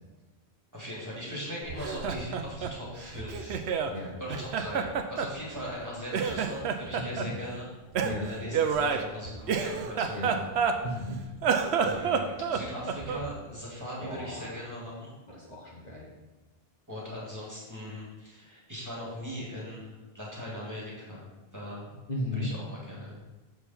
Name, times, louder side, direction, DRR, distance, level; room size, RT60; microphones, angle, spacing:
voice 1, 0.7-3.6 4.2-7.7 8.2-10.4 11.8-15.1 16.9-21.3 21.5-21.9 22.3-23.2, equal, 15° right, -6 dB, 2.6 m, -39 dB
Laughter, 1.7-4.0 4.3-5.8 6.1-7.3 7.9-11.0 11.4-13.3, right 6 dB, 90° right, 0.9 m, -29 dB
voice 2, 6.9-7.3 8.0-8.3 10.1-10.3 10.8-11.2 14.0-14.5 15.3-16.1 22.1-22.5, left 1 dB, 40° left, -4 dB, 1.5 m, -35 dB
7.3 x 6.7 x 4.4 m, 1.1 s
omnidirectional pair, 1.1 m